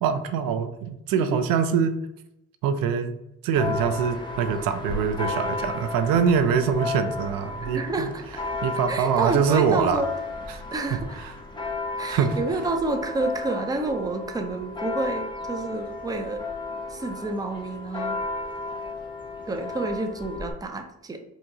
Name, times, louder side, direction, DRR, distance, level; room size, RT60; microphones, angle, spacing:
voice 1, 0.0-2.0 2.6-3.2 3.4-8.1 8.6-10.0 10.5-10.6 12.1-12.4, right 7 dB, 90° right, 9 dB, 0.5 m, -24 dB
Church bell, 3.5-20.5, left 3 dB, 15° left, 0.9 m, -34 dB
voice 2, 7.6-8.2 8.9-10.1 10.7-11.2 12.0-16.4 16.9-18.2 19.5-21.2, right 3 dB, 10° right, 6 dB, 0.4 m, -29 dB
4.7 x 2.8 x 2.7 m, 0.83 s
cardioid pair, 90°, 34 cm